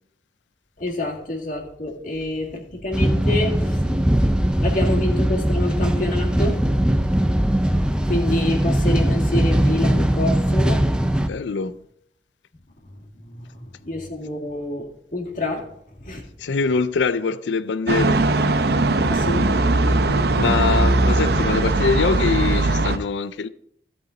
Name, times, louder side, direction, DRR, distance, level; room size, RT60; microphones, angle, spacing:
voice 1, 0.8-4.1 4.6-6.6 7.0-7.1 8.0-10.8 13.2-15.7 16.0-16.2 19.1-20.0, left 2 dB, 50° left, 2.1 m, -27 dB
sound 1, 2.9-11.3, right 1 dB, 5° right, 0.5 m, -20 dB
voice 2, 11.2-11.8 16.4-18.2 20.4-23.5, left 5 dB, 90° left, 0.4 m, -23 dB
sound 2, 17.9-23.0, right 2 dB, 60° right, 0.6 m, -19 dB
15.5 x 5.5 x 3.9 m
head